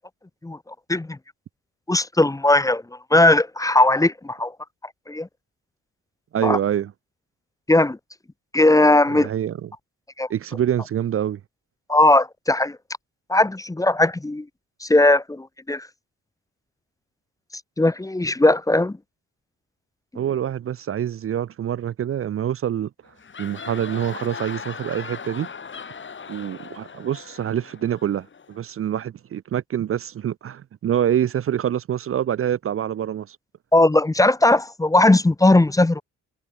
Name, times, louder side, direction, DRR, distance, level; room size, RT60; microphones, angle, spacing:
voice 1, 0.4-1.2 1.9-2.8 3.1-4.5 5.1-5.3 6.4-6.6 7.7-8.0 8.5-9.3 10.2-10.3 11.9-12.8 13.3-14.5 14.8-15.9 17.8-19.0 33.7-36.0, left 2 dB, 10° left, 0.9 m, -18 dB
voice 2, 6.3-6.9 9.1-9.7 10.3-11.4 20.1-22.9 23.4-25.5 26.3-33.4, right 10 dB, 45° right, 0.7 m, -26 dB
sound 1, 23.1-28.6, left 6 dB, 40° left, 6.6 m, -38 dB
cardioid pair, 90°, 30 cm